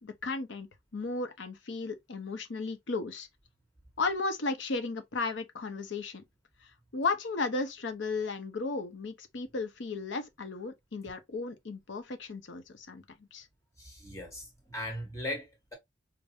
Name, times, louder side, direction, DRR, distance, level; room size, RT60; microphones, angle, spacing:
voice 1, 0.0-3.3 4.0-6.2 6.6-13.0 13.3-13.5, left 3 dB, 75° left, 0.7 m, -35 dB
voice 2, 13.8-15.8, left 1 dB, 15° left, 1.3 m, -39 dB
4.8 x 2.1 x 2.6 m
head